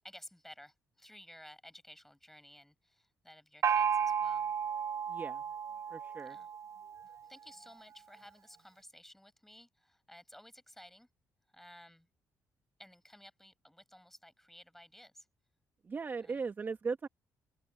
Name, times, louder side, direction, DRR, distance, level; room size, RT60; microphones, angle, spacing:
voice 1, 0.0-4.5 6.2-6.5 7.2-11.1 11.5-12.1 12.8-15.3 16.2-16.4, left 1 dB, 5° left, 6.3 m, -55 dB
Gong, 3.6-7.1, right 7 dB, 55° right, 0.6 m, -33 dB
voice 2, 5.1-5.4 5.9-6.4 15.8-17.1, right 5 dB, 35° right, 0.9 m, -38 dB
open air
cardioid pair, 105°, 6 cm